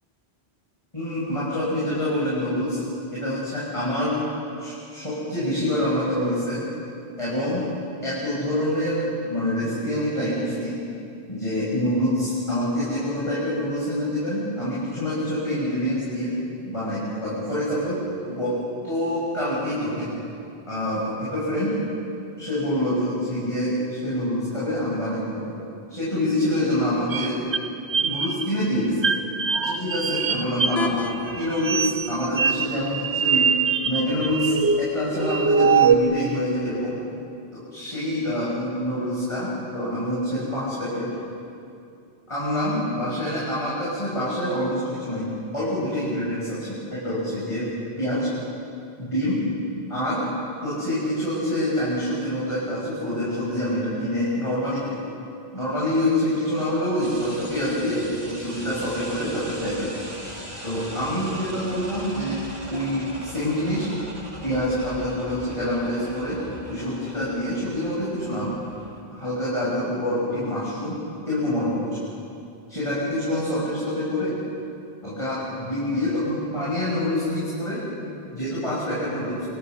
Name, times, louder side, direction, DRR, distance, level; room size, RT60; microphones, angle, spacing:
voice 1, 0.9-2.8 3.1-4.2 4.6-6.6 7.2-7.7 8.0-10.8 11.3-16.3 16.6-18.0 18.3-18.6 18.8-20.1 20.7-21.7 22.4-25.5 25.9-27.6 27.9-29.1 29.6-31.1 31.4-33.5 33.8-37.0 37.5-41.1 42.3-45.2 45.5-47.7 48.0-48.3 49.0-49.4 49.9-50.3 50.6-55.0 55.5-60.0 60.6-63.9 64.4-66.4 66.6-68.6 69.1-71.0 71.3-72.0 72.7-74.4 75.0-79.4, left 1 dB, 30° left, -8 dB, 7.0 m, -26 dB
sound 1, 27.1-28.5 29.0-30.8 31.3-35.9, right 6 dB, 85° right, 1.3 m, -23 dB
sound 2, 30.8-36.8, left 3 dB, 75° left, 1.9 m, -39 dB
sound 3, 57.0-69.0, right 1 dB, 40° right, 3.5 m, -40 dB
29.0 x 27.0 x 6.5 m, 2.6 s
omnidirectional pair, 1.1 m